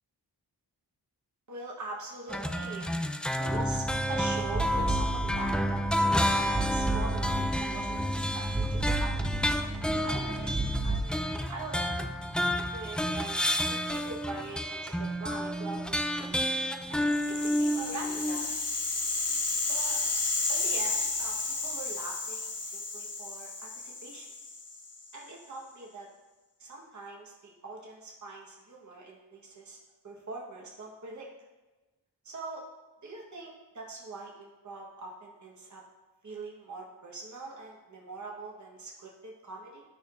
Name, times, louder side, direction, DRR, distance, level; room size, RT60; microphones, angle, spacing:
voice 1, 1.5-5.8 6.3-9.8 10.0-10.5 10.8-11.2 11.5-12.0 12.5-16.3 16.9-17.2 17.4-18.5 19.7-20.0 20.5-24.3 25.1-26.1 26.6-29.8 30.0-31.3 32.2-32.6 33.0-35.8 36.2-39.8, right 3 dB, 45° right, -2 dB, 1.2 m, -43 dB
sound 1, 2.3-18.6, equal, ahead, 0.4 m, -30 dB
sound 2, 3.5-11.0, right 2 dB, 15° right, 0.8 m, -34 dB
Rattle (instrument), 17.0-25.2, left 3 dB, 40° left, 0.9 m, -32 dB
12.0 x 4.3 x 2.5 m, 1.1 s
cardioid pair, 50°, 40 cm